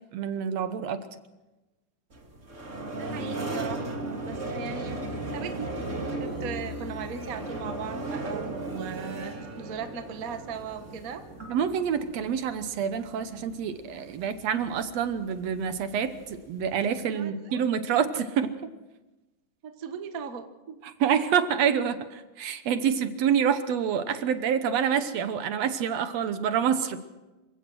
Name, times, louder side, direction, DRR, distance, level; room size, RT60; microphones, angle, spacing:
voice 1, 0.1-1.0 11.5-18.5 20.8-27.0, right 8 dB, 65° right, 11 dB, 1.7 m, -27 dB
sound 1, 2.1-17.0, right 2 dB, 25° right, 2.2 m, -37 dB
voice 2, 3.0-5.7 6.2-11.2 17.0-17.6 19.6-20.8, right 6 dB, 90° right, 7 dB, 0.7 m, -38 dB
27.5 x 16.5 x 6.3 m, 1.1 s
omnidirectional pair, 3.9 m